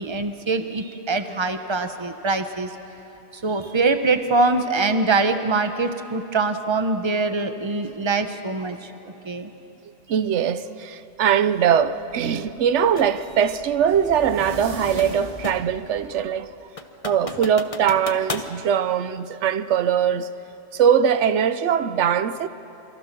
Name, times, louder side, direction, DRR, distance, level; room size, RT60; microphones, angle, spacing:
voice 1, 0.0-2.7 3.3-8.9 9.2-9.5, right 3 dB, 25° right, 1.1 m, -23 dB
voice 2, 10.1-16.5 17.0-20.3 20.7-22.5, right 8 dB, 85° right, 1.0 m, -21 dB
sound 1, 11.8-16.6, right 1 dB, 45° right, 2.5 m, -40 dB
sound 2, 13.0-13.2 14.5-15.8 16.2-16.3 16.8-18.5, left 3 dB, 30° left, 0.9 m, -34 dB
27.5 x 24.0 x 6.1 m
omnidirectional pair, 1.2 m